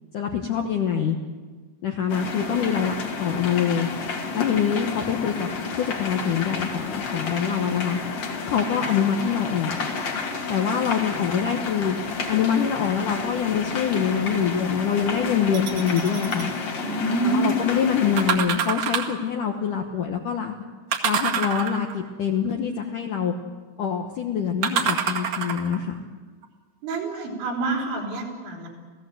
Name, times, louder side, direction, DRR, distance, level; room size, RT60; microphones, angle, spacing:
voice 1, 0.1-1.2 1.8-3.9 4.3-5.5 5.8-8.0 8.5-9.8 10.5-12.0 12.3-16.5 17.1-20.5 21.0-23.3 23.8-26.0, left 7 dB, 70° left, 3 dB, 2.0 m, -25 dB
sound 1, 2.1-18.4, left 4 dB, 45° left, 2.7 m, -31 dB
sound 2, 15.5-16.5 18.2-19.3 20.9-22.1 24.6-25.8 26.4-26.5, right 7 dB, 55° right, 3.1 m, -26 dB
voice 2, 16.8-17.5 26.8-28.7, right 3 dB, 75° right, 0 dB, 6.3 m, -27 dB
29.0 x 17.0 x 7.8 m, 1.4 s
omnidirectional pair, 5.3 m